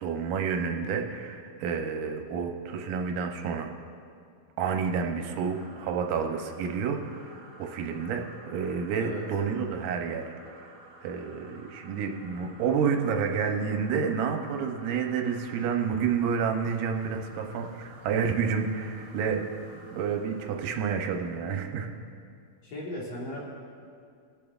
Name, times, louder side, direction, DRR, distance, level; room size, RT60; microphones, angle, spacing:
voice 1, 0.0-3.7 4.6-10.8 11.0-19.4 19.8-21.9, right 6 dB, 75° right, 4 dB, 2.0 m, -29 dB
sound 1, 4.8-21.8, right 2 dB, 20° right, 1.8 m, -52 dB
sound 2, 16.9-21.5, equal, 75° left, 3.5 m, -54 dB
voice 2, 22.6-23.4, left 1 dB, 55° left, -5 dB, 2.5 m, -36 dB
25.5 x 8.8 x 2.4 m, 2.3 s
omnidirectional pair, 4.4 m